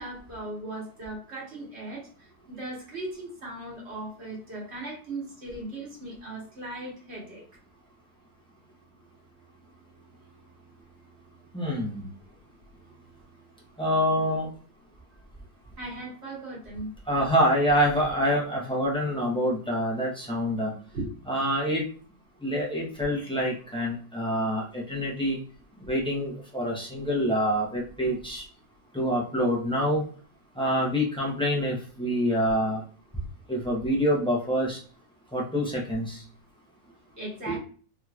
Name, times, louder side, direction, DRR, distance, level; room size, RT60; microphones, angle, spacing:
voice 1, 0.0-2.0 2.5-7.4 15.8-16.9 20.9-21.1 37.2-37.6, right 2 dB, 45° right, -5 dB, 1.6 m, -37 dB
voice 2, 11.5-12.0 13.8-14.5 17.1-20.7 21.3-21.8 22.4-25.4 25.9-28.4 28.9-30.0 30.6-32.8 33.5-34.8 35.3-36.2 37.5-37.6, equal, 5° left, -4 dB, 0.6 m, -26 dB
3.6 x 3.0 x 2.3 m, 0.42 s
omnidirectional pair, 1.6 m